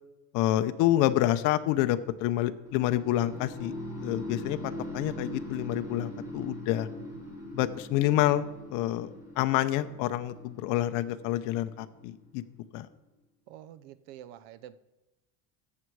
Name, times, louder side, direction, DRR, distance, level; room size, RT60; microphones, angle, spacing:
voice 1, 0.3-3.7 4.0-6.9 7.5-8.4 8.7-12.4 12.7-12.9, left 14 dB, 60° left, 10 dB, 0.8 m, -28 dB
sound 1, 2.6-12.6, left 1 dB, 10° right, 3.4 m, -41 dB
voice 2, 13.5-14.8, right 11 dB, 75° right, 16 dB, 0.8 m, -47 dB
14.0 x 8.5 x 4.7 m, 1.0 s
cardioid pair, 155°, 36 cm